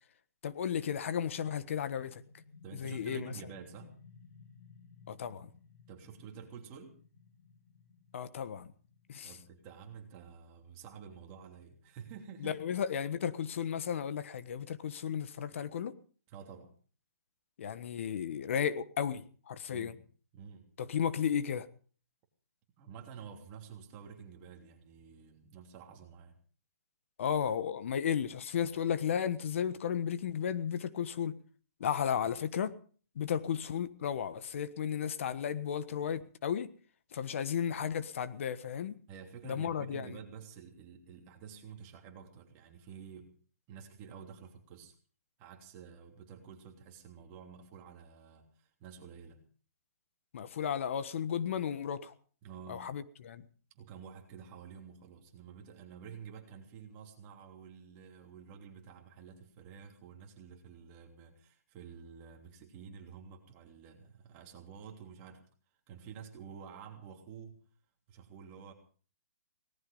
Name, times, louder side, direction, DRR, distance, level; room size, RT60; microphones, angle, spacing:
voice 1, 0.4-2.2 2.7-3.3 5.1-5.5 8.1-8.7 9.1-9.3 12.4-15.9 17.6-20.0 20.8-21.7 27.2-31.4 31.8-32.7 33.1-36.7 37.1-39.0 39.4-40.2 50.3-52.1 52.7-53.4, left 8 dB, 55° left, 13 dB, 1.4 m, -34 dB
sound 1, 2.1-12.5, left 5 dB, 75° left, 2.4 m, -59 dB
voice 2, 2.6-4.0 5.9-7.0 9.2-12.7 16.3-16.7 19.7-20.0 20.3-20.7 22.8-26.4 32.2-32.3 39.1-43.3 43.7-44.9 45.4-49.4 52.4-52.9 53.7-65.4 65.9-67.6 68.1-68.7, right 7 dB, 25° right, 3 dB, 3.1 m, -50 dB
18.5 x 14.5 x 5.5 m, 0.42 s
hypercardioid pair, 160°, 8 cm